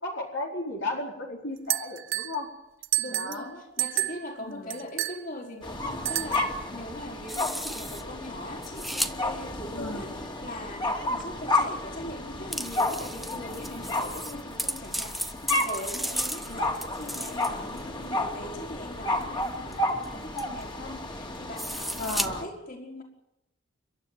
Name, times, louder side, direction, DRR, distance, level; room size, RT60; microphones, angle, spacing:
voice 1, 0.0-2.5 3.1-3.6 4.4-4.7 9.7-10.1 22.0-22.5, left 2 dB, 70° left, -1 dB, 4.5 m, -34 dB
sound 1, 1.7-2.4 2.8-3.5 3.8-4.3 4.7-5.2 6.1-6.6, right 15 dB, 90° right, 0.9 m, -29 dB
voice 2, 3.0-23.0, left 1 dB, 50° left, 0 dB, 5.1 m, -40 dB
sound 2, 4.8-4.9 7.3-8.0 8.6-9.1 11.2-11.3 12.5-17.8 19.2-19.3 19.7-19.8 20.0-20.1 20.4-20.6 21.6-22.3, equal, ahead, 1.0 m, -34 dB
sound 3, 5.6-22.4, left 2 dB, 25° left, 2.9 m, -32 dB
30.0 x 12.5 x 9.3 m, 0.85 s
head